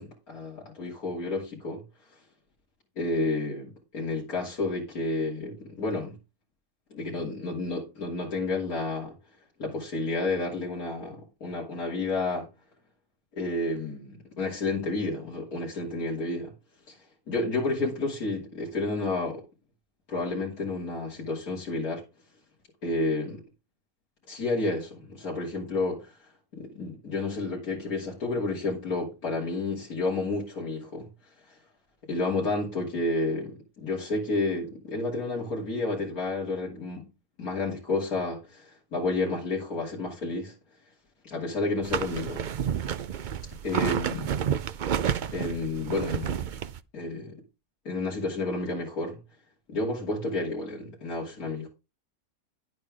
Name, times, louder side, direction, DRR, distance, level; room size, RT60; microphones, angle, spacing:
voice 1, 0.0-1.8 3.0-6.1 6.9-9.1 9.6-12.5 13.4-16.5 16.9-17.0 17.3-19.4 20.1-22.0 22.8-23.4 24.3-26.2 26.5-31.1 31.5-31.6 32.0-37.1 37.4-40.6 41.2-42.4 43.6-44.4 45.3-46.5 46.9-47.4 47.8-49.2 49.7-51.7, left 2 dB, 75° left, 3.2 m, -30 dB
sound 1, 41.8-46.8, right 8 dB, 70° right, 0.4 m, -30 dB
10.5 x 8.5 x 3.6 m
omnidirectional pair, 1.6 m